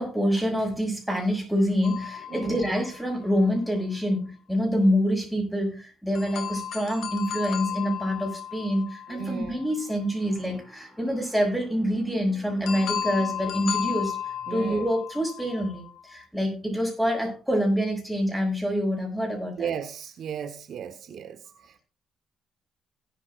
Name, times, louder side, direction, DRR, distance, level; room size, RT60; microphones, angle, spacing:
voice 1, 0.0-19.7, equal, ahead, 1 dB, 6.4 m, -26 dB
sound 1, 1.8-3.6 6.1-10.0 12.6-16.1, left 9 dB, 75° left, 2.1 m, -34 dB
voice 2, 2.3-2.7 9.1-9.6 14.5-14.8 19.6-21.8, right 7 dB, 65° right, 7 dB, 1.3 m, -35 dB
18.0 x 11.0 x 2.6 m, 0.34 s
cardioid pair, 125°, 0 cm